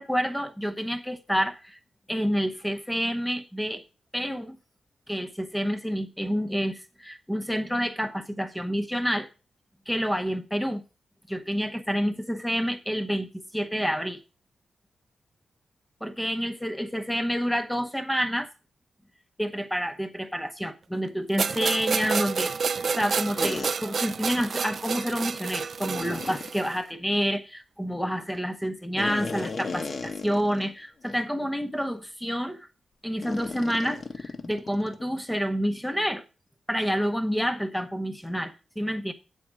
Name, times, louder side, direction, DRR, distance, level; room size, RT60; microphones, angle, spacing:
voice 1, 0.0-1.8 2.1-3.8 4.1-4.6 5.1-9.3 9.9-10.8 11.3-13.3 13.5-14.2 16.0-18.5 19.4-32.7 33.0-36.2 36.7-39.1, equal, 5° left, 0.9 m, -28 dB
sound 1, 21.4-26.7, right 5 dB, 50° right, 0.4 m, -29 dB
sound 2, 23.4-23.7 25.8-26.5 29.0-30.7 31.0-31.2 31.8-31.9 33.2-35.0, left 4 dB, 40° left, 0.9 m, -35 dB
8.5 x 4.6 x 7.5 m
wide cardioid pair, 130°, 0 cm